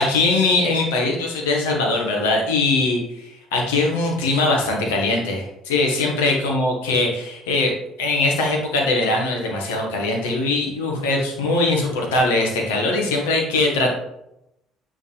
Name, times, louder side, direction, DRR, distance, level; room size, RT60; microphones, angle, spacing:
voice 1, 0.0-13.9, left 2 dB, 70° left, 0 dB, 1.5 m, -21 dB
9.0 x 3.8 x 3.3 m, 0.84 s
figure-of-eight pair, 55°, 0 cm